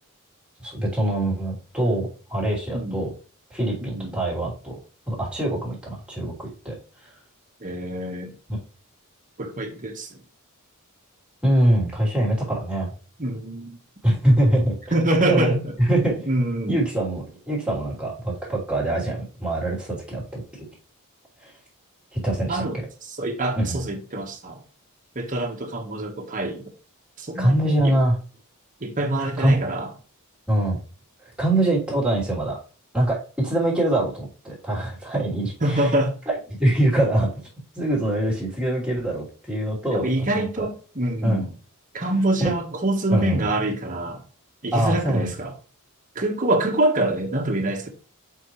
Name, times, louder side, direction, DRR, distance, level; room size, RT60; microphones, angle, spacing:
voice 1, 0.6-3.1 3.5-4.8 5.1-6.7 11.4-12.9 14.0-14.9 15.2-20.6 21.4-21.5 22.1-22.6 23.5-23.8 27.3-28.2 29.2-29.7 30.5-30.8 31.2-32.6 32.9-35.9 36.3-36.4 36.6-37.3 37.7-40.7 41.2-41.5 42.4-42.5 43.1-43.5 44.7-45.3, right 1 dB, 5° right, 3.1 m, -24 dB
voice 2, 2.7-3.1 3.8-4.2 7.6-8.3 9.4-10.1 13.2-13.8 14.9-15.6 16.3-16.8 22.5-22.8 23.2-24.6 25.1-26.6 27.2-27.9 28.8-29.9 35.6-36.1 39.9-41.5 41.9-44.2 44.6-45.5 46.1-47.9, right 1 dB, 35° right, 1.3 m, -25 dB
7.7 x 4.8 x 3.1 m
head